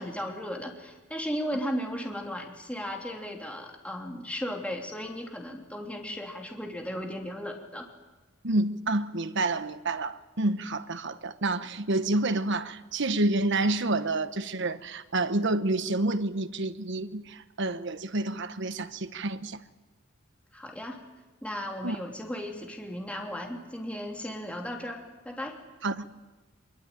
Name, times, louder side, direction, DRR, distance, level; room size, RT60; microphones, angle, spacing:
voice 1, 0.0-7.9 20.5-21.0 21.4-25.6, equal, 5° left, 3.2 m, -36 dB
voice 2, 8.4-19.6 21.8-22.0 25.8-26.1, right 2 dB, 65° right, 1.2 m, -29 dB
24.0 x 23.0 x 9.3 m
head